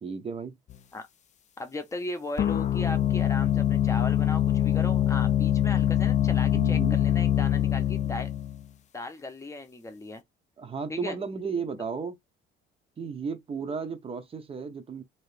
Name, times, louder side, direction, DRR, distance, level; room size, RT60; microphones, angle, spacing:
voice 1, 0.0-0.6 6.5-7.0 10.6-12.2 13.0-15.0, right 5 dB, 25° right, 0.8 m, -34 dB
sound 1, 0.7-0.8 2.4-8.6, left 11 dB, 35° left, 0.4 m, -24 dB
voice 2, 1.6-8.3 8.9-10.2 10.9-11.2, left 2 dB, 15° left, 0.8 m, -37 dB
3.1 x 2.8 x 3.3 m
cardioid pair, 140°, 21 cm